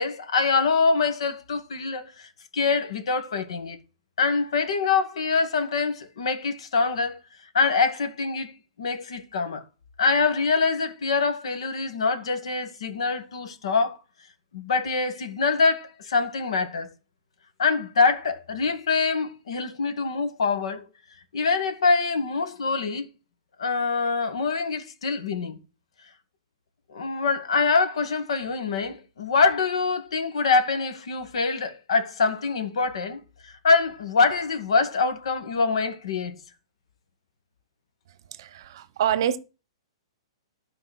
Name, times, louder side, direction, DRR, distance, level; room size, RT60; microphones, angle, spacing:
voice 1, 0.0-3.8 4.2-7.2 7.5-8.5 8.8-9.6 10.0-14.0 14.5-16.9 17.6-20.8 21.3-23.1 23.6-25.5 26.9-36.4, left 4 dB, 70° left, 2.1 m, -24 dB
voice 2, 38.3-39.4, right 10 dB, 45° right, 1.0 m, -26 dB
12.0 x 4.7 x 6.2 m
hypercardioid pair, 170°, 3 cm